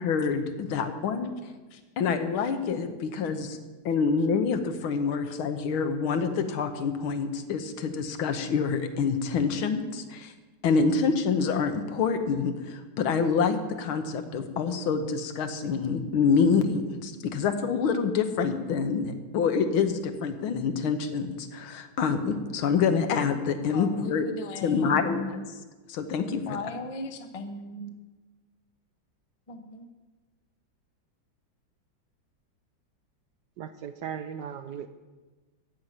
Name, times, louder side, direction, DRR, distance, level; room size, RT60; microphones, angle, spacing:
voice 1, 0.0-1.3 2.0-3.6 3.8-10.3 10.6-24.2 24.6-25.2 25.9-26.6, left 5 dB, 80° left, 8 dB, 1.9 m, -26 dB
voice 2, 23.7-25.4 26.4-27.9 29.5-29.9, left 3 dB, 35° left, 7 dB, 0.5 m, -37 dB
voice 3, 33.6-34.9, right 8 dB, 70° right, 10 dB, 1.1 m, -37 dB
14.0 x 5.8 x 9.3 m, 1.2 s
omnidirectional pair, 2.3 m